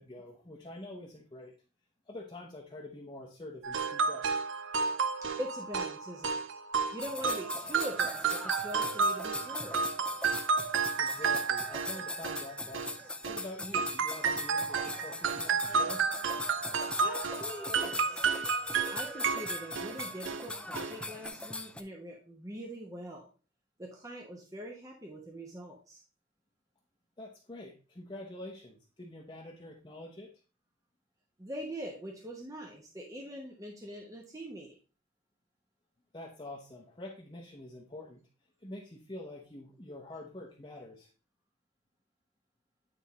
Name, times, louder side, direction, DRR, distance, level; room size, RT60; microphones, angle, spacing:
voice 1, 0.0-1.5 2.1-4.3 11.0-16.0 27.2-30.3 36.1-38.2 38.6-41.1, left 1 dB, 20° left, -2 dB, 0.9 m, -46 dB
sound 1, 3.6-13.4 13.7-20.5 20.7-21.0 21.3-21.4, right 5 dB, 65° right, 0.6 m, -32 dB
voice 2, 5.4-6.4 6.9-9.8 17.0-18.2 18.9-23.3 23.8-26.0 31.4-34.7, equal, 15° right, -1 dB, 1.0 m, -43 dB
sound 2, 7.0-21.8, left 2 dB, 5° left, 0.4 m, -40 dB
9.4 x 3.6 x 4.1 m, 0.34 s
head